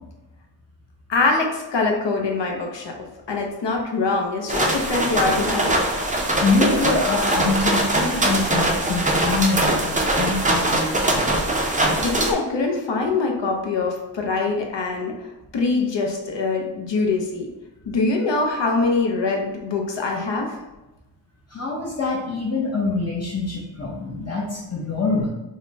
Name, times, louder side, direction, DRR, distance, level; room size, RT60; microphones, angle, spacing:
voice 1, 1.1-2.9 3.3-5.8 12.0-15.1 15.5-17.5 17.9-20.6, left 3 dB, 80° left, 1 dB, 0.7 m, -23 dB
sound 1, 4.5-12.3, right 1 dB, 20° right, 0.4 m, -22 dB
voice 2, 6.4-11.3 21.5-25.3, left 3 dB, 35° left, -4 dB, 0.6 m, -25 dB
4.8 x 2.1 x 2.7 m, 1.0 s
wide cardioid pair, 105°, 43 cm